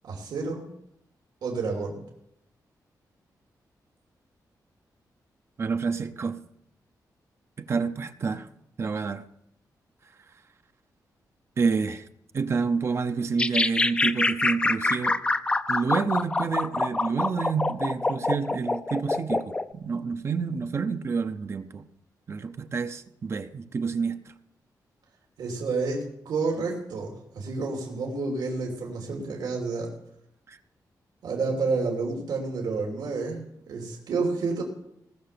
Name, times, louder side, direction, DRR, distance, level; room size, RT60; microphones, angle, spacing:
voice 1, 0.0-0.7 1.4-2.0 25.4-29.9 31.2-33.4 33.7-34.6, right 4 dB, 80° right, 2.9 m, -29 dB
voice 2, 5.6-6.4 7.6-8.5 8.8-9.2 11.6-12.0 12.3-15.2 15.7-21.8 22.3-24.2 30.5-30.6, right 5 dB, 40° right, 0.6 m, -28 dB
sound 1, 13.4-19.7, left 2 dB, 15° left, 0.4 m, -25 dB
19.5 x 6.8 x 6.7 m
wide cardioid pair, 170°, 7 cm